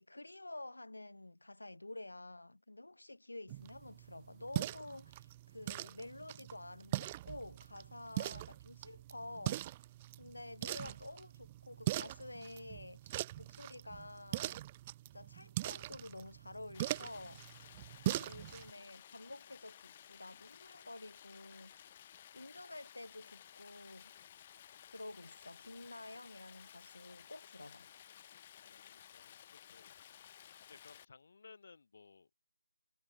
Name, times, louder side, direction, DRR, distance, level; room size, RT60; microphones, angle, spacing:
voice 1, 0.0-9.6 10.2-14.6 15.1-17.4 18.0-21.7 22.3-24.3 24.9-27.9, left 2 dB, 90° left, 1.9 m, -50 dB
sound 1, 3.5-18.7, right 15 dB, 20° right, 0.3 m, -42 dB
Stream, 16.7-31.1, left 10 dB, 25° left, 2.4 m, -57 dB
voice 2, 28.6-30.2 30.7-32.4, left 4 dB, 50° left, 4.5 m, -60 dB
figure-of-eight pair, 165°, 0 cm